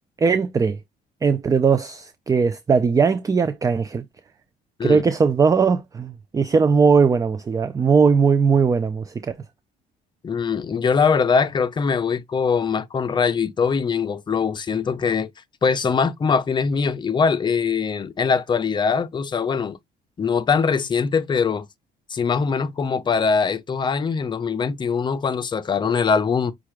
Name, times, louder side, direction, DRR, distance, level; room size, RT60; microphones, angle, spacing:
voice 1, 0.2-0.8 1.2-4.0 4.8-9.4, right 5 dB, 20° right, 0.4 m, -19 dB
voice 2, 10.2-15.3 15.6-19.8 20.2-21.7 22.1-26.5, left 5 dB, 25° left, 0.6 m, -22 dB
5.7 x 2.4 x 3.2 m
cardioid pair, 110°, 17 cm